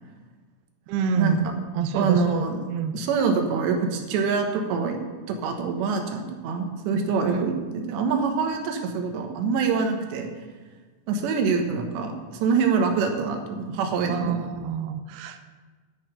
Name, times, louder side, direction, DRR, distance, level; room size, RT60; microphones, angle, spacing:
voice 1, 0.9-2.9 7.2-7.4 14.1-15.4, right 6 dB, 90° right, 6 dB, 2.3 m, -28 dB
voice 2, 1.9-2.6 2.9-5.0 5.3-10.3 11.1-14.4, right 5 dB, 70° right, 4 dB, 3.1 m, -25 dB
11.0 x 6.2 x 8.9 m, 1.4 s
omnidirectional pair, 5.7 m